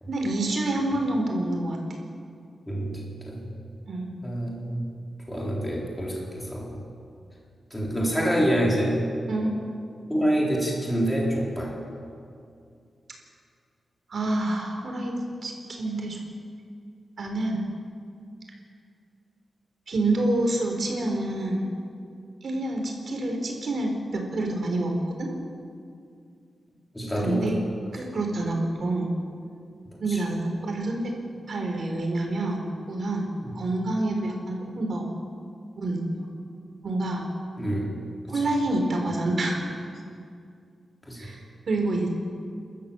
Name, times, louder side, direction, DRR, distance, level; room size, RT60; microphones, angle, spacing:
voice 1, 0.1-1.8 3.9-4.1 9.3-9.5 14.1-15.2 15.4-16.2 17.2-17.6 19.9-21.7 22.4-25.3 27.2-27.6 27.9-29.1 30.0-31.1 31.5-33.3 33.5-35.1 35.8-36.3 36.8-37.3 38.3-39.6 41.2-41.4 41.7-42.1, right 2 dB, 50° right, 2 dB, 4.3 m, -27 dB
voice 2, 2.7-3.4 4.2-4.8 5.3-6.8 7.7-9.0 10.1-11.8 26.9-27.5 30.1-30.2 33.4-33.6 37.6-37.9 38.3-38.4 39.1-39.2 41.1-41.3, equal, 5° left, -4 dB, 3.9 m, -27 dB
29.5 x 13.5 x 7.2 m, 2.4 s
wide cardioid pair, 170°, 0 cm